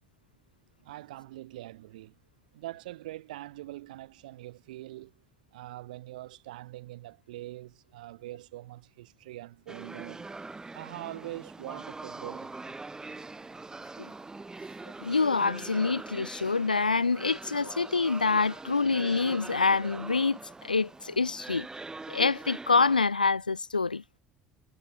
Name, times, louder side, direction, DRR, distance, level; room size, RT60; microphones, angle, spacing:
voice 1, 0.8-2.1 2.5-5.1 5.5-10.3 10.7-12.7, right 16 dB, 70° right, 1.4 m, -43 dB
sound 1, 9.7-23.0, right 3 dB, 15° right, 0.7 m, -43 dB
voice 2, 15.0-21.7 22.1-24.0, left 4 dB, 90° left, 0.4 m, -26 dB
figure-of-eight pair, 65°, 4 cm